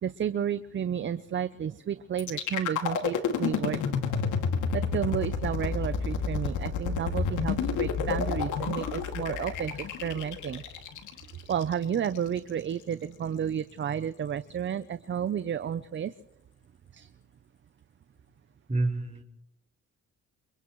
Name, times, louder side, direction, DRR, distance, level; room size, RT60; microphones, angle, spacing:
voice 1, 0.0-3.8 4.7-10.6 11.5-16.1 16.9-17.1, right 8 dB, 40° right, 13 dB, 0.7 m, -31 dB
sound 1, 2.2-12.2, left 6 dB, 80° left, 2.4 m, -30 dB
voice 2, 18.7-19.2, right 2 dB, 25° right, 2 dB, 4.5 m, -28 dB
29.0 x 28.5 x 3.1 m, 0.80 s
cardioid pair, 90°, 30 cm